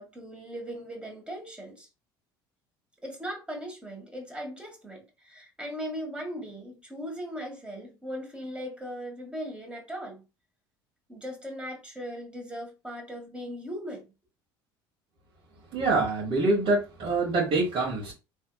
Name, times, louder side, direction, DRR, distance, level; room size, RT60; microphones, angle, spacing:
voice 1, 0.0-1.9 3.0-10.2 11.1-14.0, equal, 10° right, 1.6 m, -38 dB
voice 2, 15.7-18.1, right 2 dB, 55° right, 1.5 m, -25 dB
3.4 x 2.8 x 2.2 m
hypercardioid pair, 75°, 11 cm